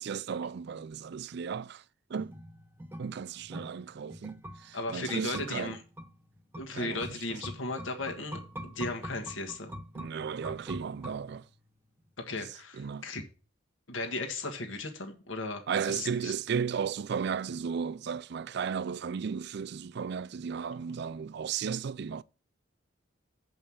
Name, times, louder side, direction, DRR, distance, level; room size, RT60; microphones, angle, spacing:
voice 1, 0.0-1.8 2.1-2.3 3.0-5.8 6.7-7.4 9.9-11.5 12.4-12.5 12.7-13.1 15.7-22.2, right 6 dB, 60° right, 0.4 m, -35 dB
sound 1, 2.2-11.7 12.0-12.1, equal, 10° right, 0.9 m, -45 dB
voice 2, 4.7-5.8 6.6-9.7 12.3-13.2 13.9-16.3, left 2 dB, 85° left, 1.6 m, -36 dB
8.0 x 5.5 x 7.1 m
head